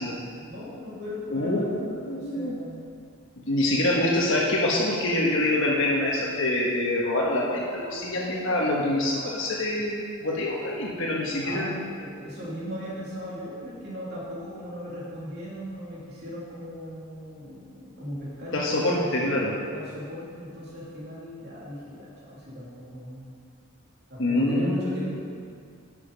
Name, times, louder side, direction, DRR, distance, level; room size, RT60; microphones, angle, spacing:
voice 1, 0.4-2.9 11.4-23.2 24.1-25.2, equal, 50° right, -7 dB, 3.0 m, -38 dB
voice 2, 1.3-2.6 3.5-11.9 18.5-19.5 24.2-25.2, left 1 dB, 60° left, -4 dB, 1.4 m, -25 dB
12.0 x 6.9 x 5.4 m, 2.2 s
head